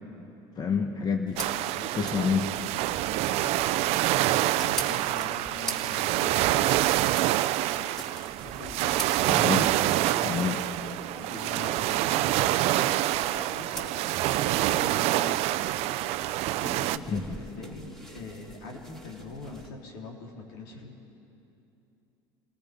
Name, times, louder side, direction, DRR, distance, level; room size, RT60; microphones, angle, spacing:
voice 1, 0.6-1.4 1.9-2.5 9.3-9.7 10.2-10.6 17.1-17.2, left 6 dB, 35° left, 4 dB, 1.6 m, -27 dB
sound 1, 1.3-19.7, right 1 dB, 5° left, 3.5 m, -44 dB
sound 2, 1.4-17.0, right 15 dB, 60° right, 0.5 m, -26 dB
voice 2, 1.7-2.2 3.1-6.9 7.6-7.9 8.4-9.0 10.2-10.5 11.2-15.4 16.2-20.9, left 3 dB, 75° left, -1 dB, 3.7 m, -44 dB
28.5 x 17.5 x 5.3 m, 2.8 s
hypercardioid pair, 80°, 12 cm